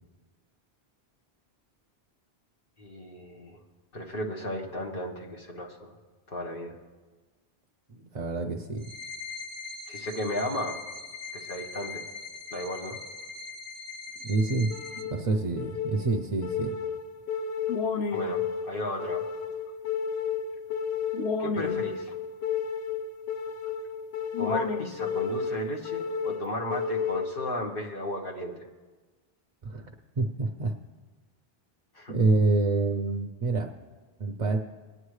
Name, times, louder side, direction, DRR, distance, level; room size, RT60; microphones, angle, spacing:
voice 1, 2.8-3.6 3.9-5.9 6.3-6.7 9.9-10.8 11.3-12.0 12.5-13.0 18.1-19.2 21.4-22.1 24.4-28.5 31.9-32.1, left 1 dB, 60° left, -1 dB, 1.5 m, -34 dB
voice 2, 7.9-8.8 14.2-14.7 15.0-16.7 29.6-30.7 32.1-33.7 34.2-34.6, right 3 dB, 40° right, 5 dB, 0.6 m, -27 dB
sound 1, 8.8-15.0, left 4 dB, 20° left, 1.5 m, -41 dB
sound 2, 14.7-27.7, left 6 dB, 90° left, 0.9 m, -32 dB
21.0 x 9.8 x 3.2 m, 1.3 s
omnidirectional pair, 1.1 m